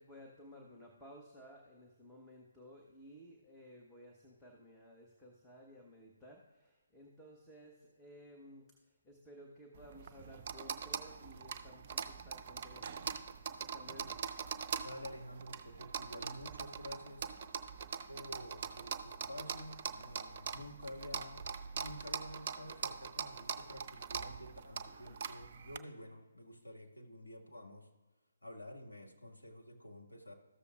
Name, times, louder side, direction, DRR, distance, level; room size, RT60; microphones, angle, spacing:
voice 1, 0.0-8.7 9.0-13.0 13.6-14.2, equal, 5° left, -2 dB, 0.8 m, -56 dB
sound 1, 9.7-25.8, right 6 dB, 40° right, 0.5 m, -43 dB
voice 2, 14.8-17.3 18.1-21.5 21.7-27.9 28.4-30.3, left 1 dB, 75° left, -1 dB, 1.8 m, -50 dB
14.0 x 6.8 x 2.4 m, 1.2 s
figure-of-eight pair, 140°, 0 cm